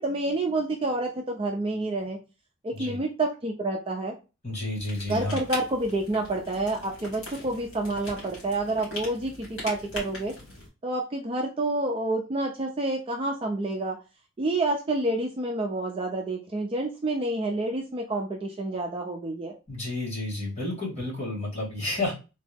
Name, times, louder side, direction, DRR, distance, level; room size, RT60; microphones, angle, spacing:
voice 1, 0.0-2.2 2.6-4.1 5.1-10.3 10.8-14.0 14.4-19.5, right 2 dB, 25° right, 1 dB, 0.4 m, -28 dB
voice 2, 4.4-5.4 19.7-22.1, left 2 dB, 30° left, -5 dB, 1.7 m, -31 dB
sound 1, 4.8-10.7, left 2 dB, 65° left, 1.9 m, -41 dB
3.5 x 2.0 x 3.3 m, 0.30 s
head